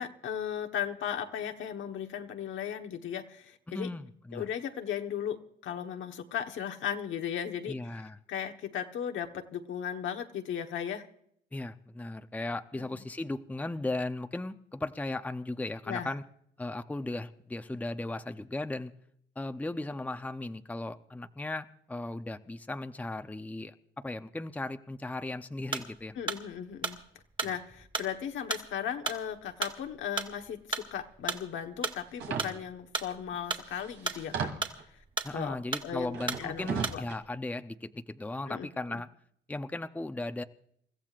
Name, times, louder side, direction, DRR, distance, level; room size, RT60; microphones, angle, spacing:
voice 1, 0.0-3.9 4.3-8.0 8.3-11.1 12.7-13.0 15.9-16.1 26.1-27.0 27.4-34.5 35.3-35.6 35.8-37.0 38.5-39.0, left 9 dB, 75° left, 5 dB, 1.3 m, -36 dB
voice 2, 3.7-4.5 7.7-8.2 11.5-16.2 16.6-18.9 19.4-26.2 27.4-27.6 35.2-39.1 39.5-40.4, left 2 dB, 10° left, 8 dB, 0.7 m, -37 dB
sound 1, 25.7-37.3, right 4 dB, 25° right, 2.1 m, -35 dB
sound 2, 32.2-32.5 33.3-33.4 33.7-34.8 36.1-37.2, right 6 dB, 80° right, 2.6 m, -35 dB
28.5 x 14.5 x 2.5 m, 0.68 s
cardioid pair, 90°, 20 cm